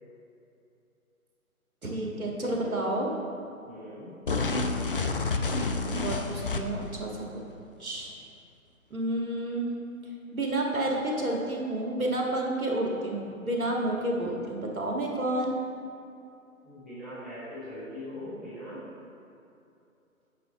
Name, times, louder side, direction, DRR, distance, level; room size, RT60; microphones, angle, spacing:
voice 1, 1.8-3.1 6.0-7.3 7.8-8.1 8.9-9.8 10.3-15.6, right 1 dB, 75° right, -1 dB, 1.7 m, -30 dB
voice 2, 2.4-2.8 3.6-4.1 13.8-14.1 16.6-18.8, equal, ahead, -16 dB, 0.7 m, -41 dB
sound 1, 4.3-6.9, left 3 dB, 40° left, 0.4 m, -29 dB
9.1 x 6.2 x 3.7 m, 2.7 s
figure-of-eight pair, 140°, 43 cm